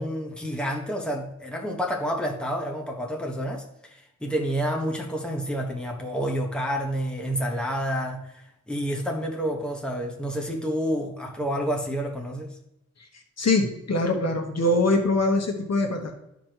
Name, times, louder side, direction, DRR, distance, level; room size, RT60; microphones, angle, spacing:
voice 1, 0.0-12.5, equal, 5° left, 0 dB, 1.4 m, -29 dB
voice 2, 13.4-16.1, left 2 dB, 60° left, 3 dB, 1.3 m, -23 dB
13.0 x 5.2 x 3.0 m, 0.84 s
wide cardioid pair, 125°, 29 cm